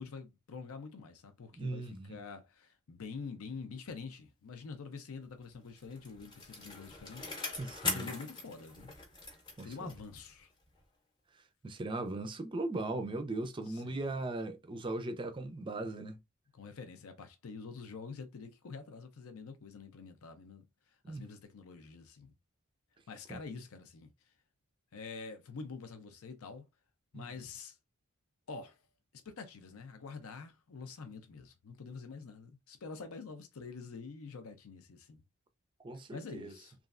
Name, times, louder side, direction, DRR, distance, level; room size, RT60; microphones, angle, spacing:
voice 1, 0.0-7.6 7.8-8.9 9.6-10.5 13.7-14.1 16.5-20.6 21.1-22.3 23.1-24.1 24.9-26.7 27.1-27.8 28.5-28.8 29.1-35.2 36.1-36.7, left 4 dB, 75° left, 0.5 m, -46 dB
voice 2, 1.6-2.2 7.6-8.1 9.6-9.7 11.6-16.2 21.0-21.2 23.3-23.4 27.1-27.3 35.8-36.5, right 2 dB, 20° right, 0.4 m, -38 dB
Bicycle, 5.5-10.4 10.8-10.9, left 3 dB, 20° left, 0.7 m, -41 dB
3.1 x 2.4 x 2.4 m
head